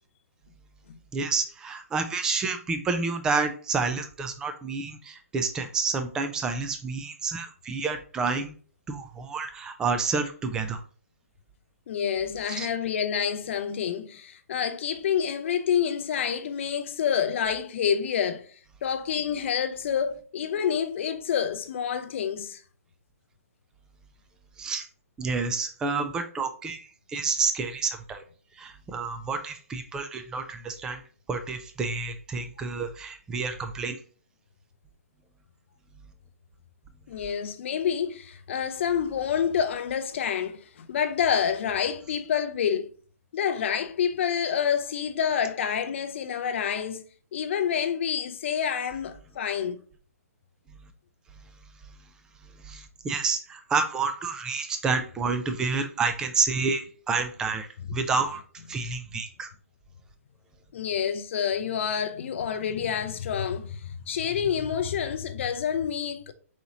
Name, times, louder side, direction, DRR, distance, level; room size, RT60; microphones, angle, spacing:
voice 1, 1.1-8.5 8.9-10.8 12.6-12.7 24.6-24.8 25.2-26.8 27.1-28.2 28.6-31.0 31.3-34.0 52.6-58.4 58.7-59.5, right 4 dB, 10° right, 0.3 m, -29 dB
voice 2, 11.9-18.5 18.8-22.6 32.6-32.7 37.1-42.9 43.3-47.0 47.3-49.8 60.7-66.3, left 8 dB, 50° left, 0.5 m, -28 dB
4.2 x 2.9 x 3.7 m
hypercardioid pair, 155°, 8 cm